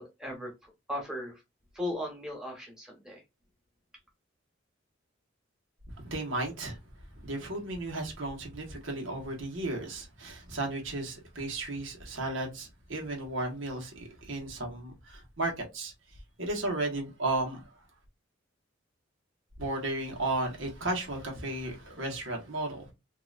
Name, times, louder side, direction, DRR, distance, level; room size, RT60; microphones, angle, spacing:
voice 1, 0.0-1.3 1.7-3.2, left 1 dB, 5° right, 1.3 m, -37 dB
voice 2, 5.9-6.8 7.2-15.9 16.4-17.6 19.6-22.9, right 2 dB, 85° right, 1.4 m, -34 dB
3.8 x 2.8 x 2.5 m
head